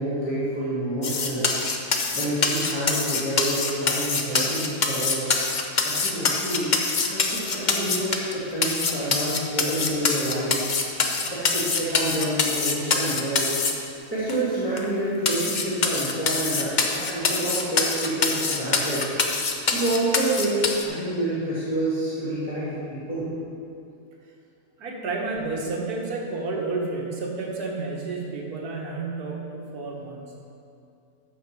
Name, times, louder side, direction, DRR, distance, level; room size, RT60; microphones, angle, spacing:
voice 1, 0.0-1.5 2.1-5.3 5.8-6.7 7.0-10.6 11.2-13.5 14.1-19.0 19.7-20.6 20.8-23.3, right 1 dB, 5° right, -11 dB, 2.5 m, -28 dB
sound 1, 1.0-8.3 8.6-13.7 14.3-14.4 14.8-14.9 15.2-20.8, left 4 dB, 45° left, 0.6 m, -24 dB
voice 2, 24.8-30.5, right 3 dB, 70° right, -1 dB, 1.9 m, -31 dB
14.0 x 5.7 x 4.8 m, 2.6 s
omnidirectional pair, 1.7 m